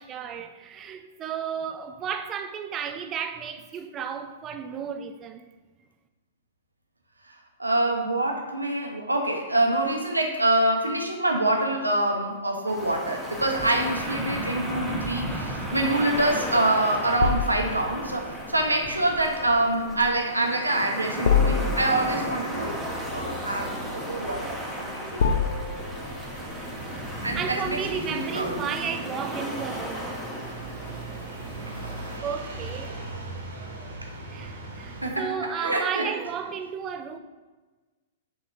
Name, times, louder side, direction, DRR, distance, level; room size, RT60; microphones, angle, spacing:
voice 1, 0.0-5.4 26.9-30.2 30.6-31.7 32.2-32.9 34.3-37.2, right 7 dB, 25° right, 0.3 m, -34 dB
voice 2, 7.6-22.8 23.1-24.5 24.8-25.0 27.2-28.6 34.0-34.1 35.0-36.1, right 1 dB, 85° right, 0.6 m, -25 dB
sound 1, 12.7-32.2, equal, 5° left, 0.7 m, -35 dB
sound 2, 14.0-26.7, left 6 dB, 60° left, 0.3 m, -30 dB
sound 3, 22.5-35.1, right 2 dB, 70° right, 0.9 m, -40 dB
6.1 x 3.0 x 2.4 m
figure-of-eight pair, 105°, 0 cm